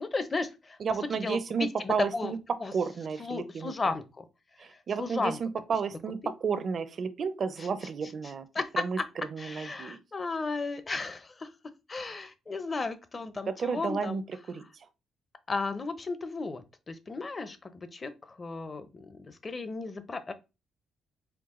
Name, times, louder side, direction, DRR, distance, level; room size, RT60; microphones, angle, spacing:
voice 1, 0.0-0.8 1.1-2.3 2.6-2.7 3.2-4.2 4.6-5.4 6.2-6.3 7.6-7.7 8.5-9.0 9.4-11.5 11.9-14.2 15.5-20.3, left 3 dB, 30° left, 0.7 m, -34 dB
voice 2, 0.8-2.4 2.7-3.7 4.6-8.5 8.7-9.0 9.3-10.0 13.5-14.2 14.5-14.6, right 6 dB, 50° right, 0.6 m, -32 dB
4.6 x 2.2 x 3.7 m
cardioid pair, 90°, 0 cm